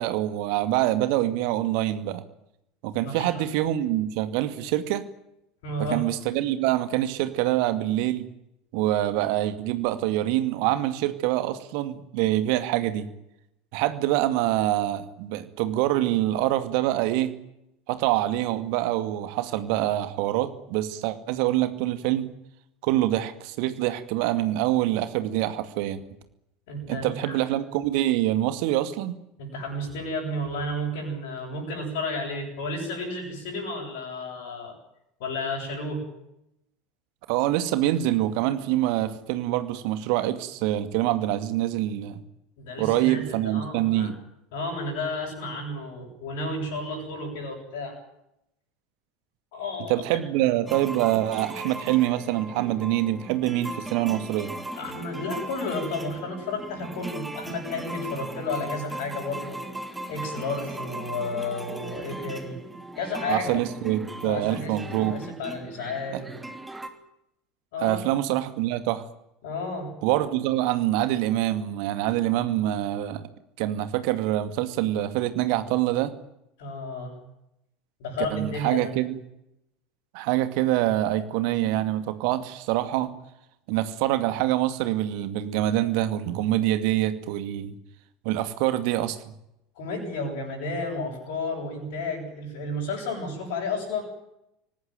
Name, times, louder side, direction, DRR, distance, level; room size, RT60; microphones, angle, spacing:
voice 1, 0.0-2.2 2.8-5.0 5.8-8.3 8.7-13.1 13.7-17.4 17.9-22.3 22.8-26.0 26.9-29.2 37.3-42.2 42.8-44.2 49.9-54.5 63.3-65.2 66.1-66.2 67.8-69.0 70.0-73.3 73.6-76.1 78.3-79.2 80.1-83.1 83.7-87.8 88.2-89.2, right 14 dB, 55° right, 10 dB, 2.3 m, -25 dB
voice 2, 3.0-3.4 5.6-6.0 26.7-27.4 29.4-34.8 35.2-36.0 42.6-44.1 44.5-48.0 49.5-50.2 54.7-59.6 60.1-62.6 63.0-63.6 64.2-66.4 67.7-68.0 69.4-69.9 76.6-77.2 78.0-78.9 89.7-94.0, left 2 dB, 60° left, -4 dB, 7.9 m, -32 dB
sound 1, 50.7-66.9, right 2 dB, 10° right, 3.2 m, -38 dB
25.5 x 18.5 x 9.4 m, 0.83 s
figure-of-eight pair, 75°, 0 cm